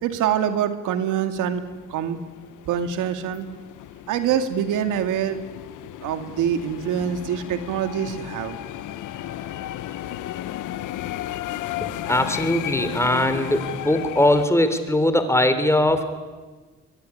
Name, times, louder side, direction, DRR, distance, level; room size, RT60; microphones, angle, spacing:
voice 1, 0.0-1.6 1.9-2.2 2.7-3.5 4.1-5.4 6.0-8.6, right 9 dB, 90° right, 8 dB, 2.3 m, -25 dB
sound 1, 1.4-14.5, left 13 dB, 85° left, 1.2 m, -34 dB
voice 2, 11.8-16.1, left 1 dB, 10° left, 10 dB, 3.6 m, -21 dB
23.5 x 22.5 x 9.9 m, 1.3 s
cardioid pair, 90°, 30 cm